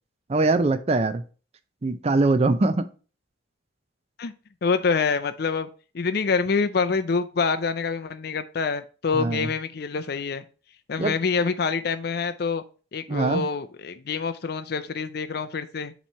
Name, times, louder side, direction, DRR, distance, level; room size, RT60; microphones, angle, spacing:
voice 1, 0.3-1.2 1.8-2.9 9.1-9.5 11.0-11.1 13.1-13.4, right 3 dB, 30° right, 11 dB, 0.4 m, -22 dB
voice 2, 4.6-5.7 5.9-10.4 10.9-12.6 12.9-15.9, left 5 dB, 55° left, 10 dB, 0.5 m, -26 dB
7.2 x 3.1 x 5.5 m, 0.36 s
head